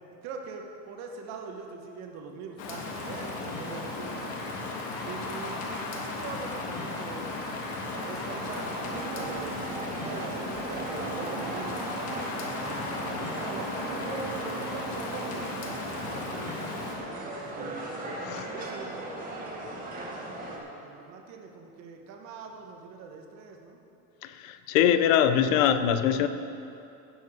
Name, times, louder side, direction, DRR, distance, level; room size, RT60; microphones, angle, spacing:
voice 1, 0.2-4.3 5.0-7.4 8.0-9.6 10.0-12.2 12.5-17.9 18.5-20.0 20.3-23.8, right 5 dB, 40° right, 2 dB, 1.2 m, -43 dB
Rain, 2.6-17.0, left 3 dB, 40° left, 1.5 m, -36 dB
sound 1, 7.9-20.6, right 2 dB, 20° right, 1.6 m, -38 dB
Wind instrument woodwind instrument, 8.8-16.4, right 7 dB, 65° right, 2.0 m, -44 dB
voice 2, 24.2-26.3, left 9 dB, 70° left, 11 dB, 0.8 m, -23 dB
17.0 x 6.9 x 5.0 m, 2.8 s
cardioid pair, 180°, 41 cm